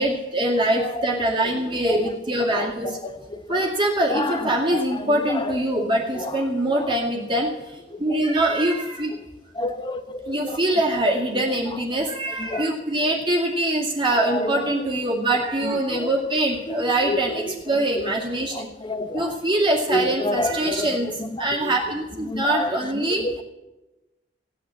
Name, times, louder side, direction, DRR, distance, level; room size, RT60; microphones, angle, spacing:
voice 1, 0.0-3.0 3.5-9.2 10.3-18.7 19.1-23.2, right 1 dB, 25° right, 2.2 m, -23 dB
voice 2, 3.0-3.4 4.1-4.8 5.3-5.5 6.2-6.3 6.7-6.9 8.1-8.2 9.6-10.6 12.5-12.7 14.3-14.6 15.9-16.1 16.7-17.4 18.8-19.4 19.9-20.9 21.2-21.3 21.6-21.8 22.3-22.7 23.2-23.4, left 1 dB, 25° left, 1.0 m, -28 dB
16.5 x 9.3 x 7.6 m
head